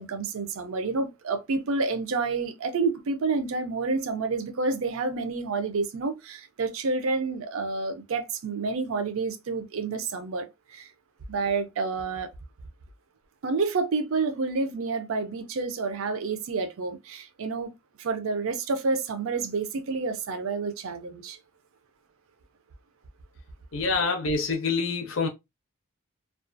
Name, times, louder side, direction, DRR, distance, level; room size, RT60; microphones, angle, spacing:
voice 1, 0.0-10.9 11.3-12.3 13.4-17.7 18.0-21.4, right 4 dB, 70° right, 0.4 m, -29 dB
voice 2, 23.7-25.3, left 4 dB, 65° left, 0.5 m, -26 dB
2.4 x 2.3 x 2.5 m
head